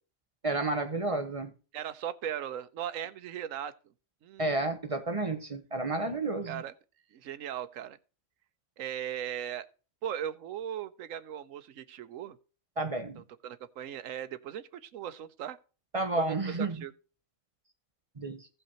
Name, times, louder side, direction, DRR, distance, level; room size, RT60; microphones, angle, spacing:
voice 1, 0.4-1.5 4.4-6.6 12.8-13.2 15.9-16.8 18.2-18.5, right 2 dB, 30° right, 0.9 m, -31 dB
voice 2, 1.7-3.7 4.2-4.6 6.5-6.7 7.1-8.0 8.8-9.7 10.0-12.4 13.2-15.6 16.2-16.9, right 10 dB, 90° right, 1.1 m, -38 dB
16.5 x 5.6 x 2.9 m
omnidirectional pair, 1.3 m